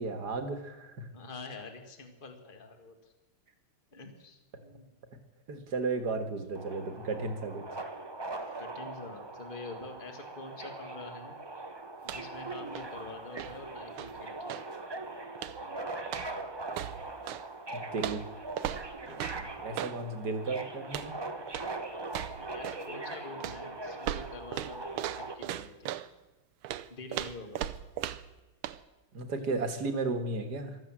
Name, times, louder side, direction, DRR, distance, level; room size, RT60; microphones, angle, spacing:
voice 1, 0.0-1.1 5.5-7.6 8.4-8.6 17.7-18.2 19.1-21.2 29.1-30.8, right 3 dB, 50° right, 7 dB, 2.0 m, -34 dB
voice 2, 1.1-3.1 3.9-4.9 8.6-11.4 12.0-14.5 22.4-25.9 26.9-27.7, left 3 dB, 25° left, 5 dB, 1.8 m, -46 dB
Subway metro underground, 6.5-25.3, right 2 dB, 30° right, 0.5 m, -41 dB
sound 1, 12.0-12.4 12.7-14.8 15.3-15.7 16.1-17.5 18.0-20.0 20.8-21.2 21.5-21.8 22.1-22.9 23.4-26.1 26.6-28.4 28.6-28.8, right 12 dB, 75° right, 1.5 m, -38 dB
15.0 x 12.5 x 7.5 m, 1.1 s
omnidirectional pair, 2.3 m